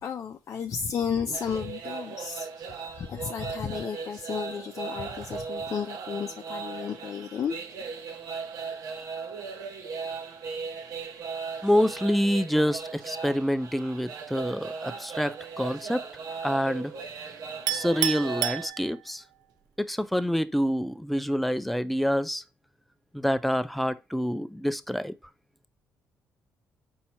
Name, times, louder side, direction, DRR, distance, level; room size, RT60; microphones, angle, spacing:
voice 1, 0.0-7.6, left 7 dB, 50° left, 0.5 m, -33 dB
sound 1, 1.3-18.7, right 5 dB, 70° right, 0.9 m, -38 dB
voice 2, 11.6-16.0 16.4-16.9 17.7-19.2 19.9-22.4 23.1-25.1, equal, ahead, 0.4 m, -27 dB
Chink clink, 17.7-19.3, right 14 dB, 90° right, 0.3 m, -30 dB
4.3 x 2.8 x 4.2 m
supercardioid pair, 75°, 7 cm